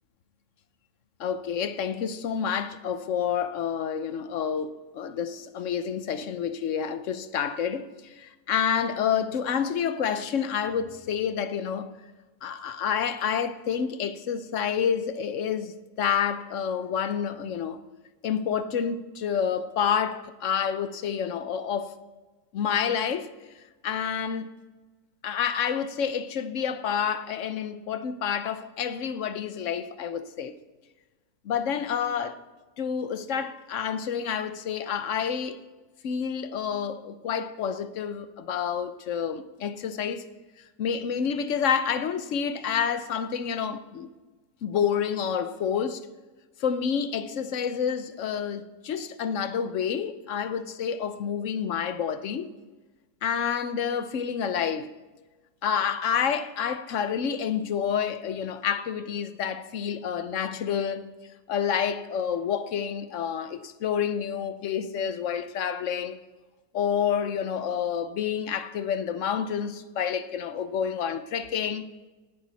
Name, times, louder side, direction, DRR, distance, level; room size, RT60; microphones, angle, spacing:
voice 1, 1.2-12.0 12.4-17.8 18.2-22.0 22.5-23.3 23.8-24.5 25.2-30.6 31.4-32.4 32.8-35.6 36.0-40.3 40.8-44.1 44.6-46.0 46.6-52.5 53.2-54.9 55.6-61.1 61.5-66.2 66.7-71.8, left 7 dB, 60° left, 1.0 m, -29 dB
17.5 x 10.5 x 4.1 m
omnidirectional pair, 1.7 m